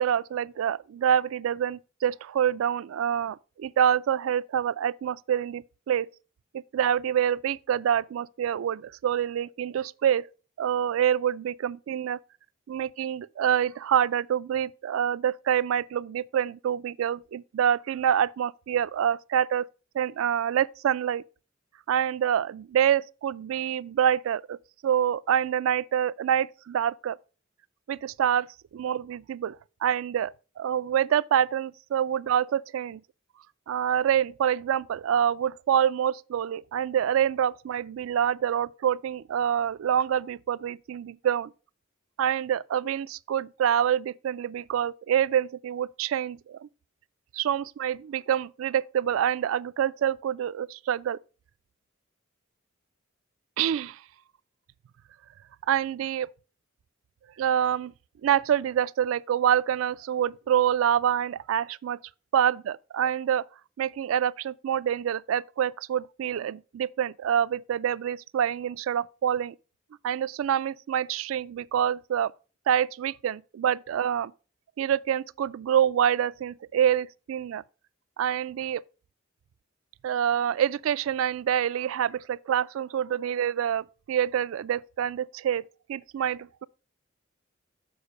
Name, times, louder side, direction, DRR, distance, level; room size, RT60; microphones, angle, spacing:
voice 1, 0.0-6.1 6.5-10.3 10.6-12.2 12.7-19.7 19.9-21.2 21.9-24.6 24.8-27.2 27.9-28.5 28.7-33.0 33.7-41.5 42.2-46.7 47.3-51.2 53.6-54.0 55.7-56.3 57.4-57.9 58.2-62.0 62.3-63.4 63.8-69.5 70.0-72.3 72.7-74.3 74.8-77.6 78.2-78.8 80.0-85.6 85.9-86.7, right 9 dB, 75° right, 0.3 m, -26 dB
7.0 x 4.7 x 4.9 m
head